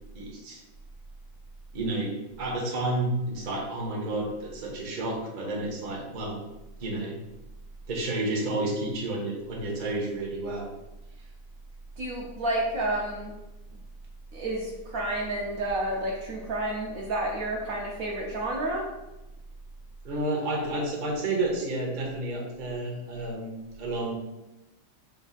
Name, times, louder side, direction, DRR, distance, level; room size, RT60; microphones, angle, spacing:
voice 1, 0.1-0.6 1.7-6.4 6.8-7.2 7.9-10.7 20.0-24.1, right 2 dB, 40° right, -2 dB, 0.8 m, -31 dB
voice 2, 12.0-13.3 14.3-18.9, right 1 dB, 65° right, -2 dB, 1.0 m, -30 dB
5.3 x 3.4 x 2.4 m, 0.97 s
omnidirectional pair, 1.8 m